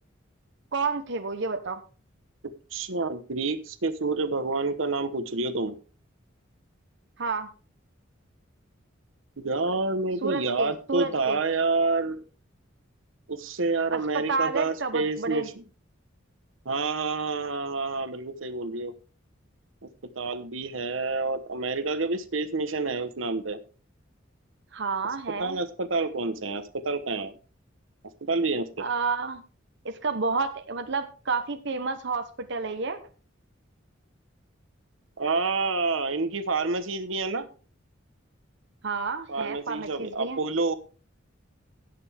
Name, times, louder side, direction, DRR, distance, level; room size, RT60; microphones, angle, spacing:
voice 1, 0.7-1.8 7.2-7.5 10.2-11.4 13.9-15.5 24.7-25.6 28.8-29.4 29.8-33.0 38.8-40.4, right 4 dB, 65° right, 7 dB, 1.0 m, -30 dB
voice 2, 2.7-5.7 9.4-12.2 13.3-15.6 16.6-18.9 20.1-23.6 25.4-27.3 28.2-28.8 35.2-37.5 39.3-40.7, right 3 dB, 85° right, 11 dB, 1.1 m, -28 dB
17.5 x 6.8 x 3.5 m, 0.36 s
head